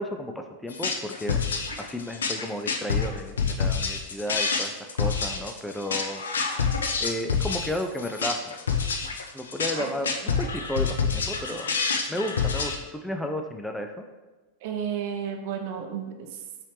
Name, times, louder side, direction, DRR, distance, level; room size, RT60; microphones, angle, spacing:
voice 1, 0.0-1.4 1.8-4.7 5.0-6.6 7.0-8.5 9.3-10.1 10.4-11.7 12.1-14.0, left 1 dB, 5° left, 4 dB, 0.3 m, -33 dB
sound 1, 0.7-12.8, left 5 dB, 70° left, 0.4 m, -27 dB
voice 2, 14.6-16.4, right 8 dB, 50° right, 4 dB, 0.6 m, -33 dB
5.5 x 3.0 x 3.2 m, 1.2 s
figure-of-eight pair, 90°, 0 cm